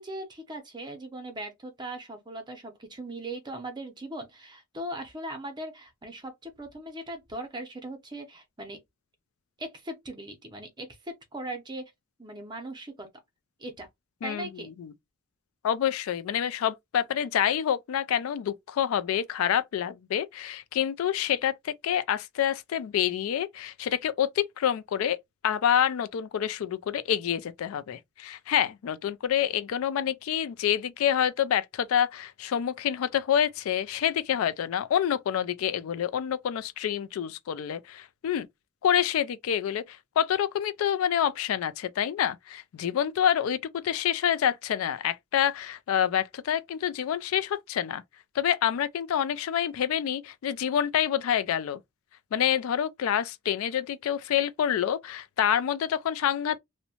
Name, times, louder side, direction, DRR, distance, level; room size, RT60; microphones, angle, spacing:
voice 1, 0.0-8.8 9.6-11.9 12.2-13.1 13.6-13.9 14.2-14.7, right 1 dB, 20° right, 0.6 m, -39 dB
voice 2, 15.6-25.2 25.4-38.5 38.8-48.0 48.3-51.8 52.3-56.6, left 9 dB, 80° left, 0.3 m, -27 dB
2.7 x 2.1 x 2.7 m
head